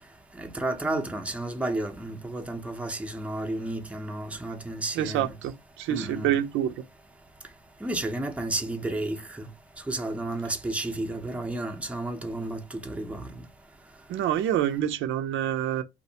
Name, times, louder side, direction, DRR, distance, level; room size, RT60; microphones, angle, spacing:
voice 1, 0.4-5.3 5.9-6.4 7.8-9.5 9.9-13.4, right 2 dB, 5° right, 0.6 m, -32 dB
voice 2, 5.0-6.7 14.1-15.8, right 11 dB, 85° right, 0.5 m, -27 dB
2.5 x 2.0 x 2.7 m
cardioid pair, 90°, 20 cm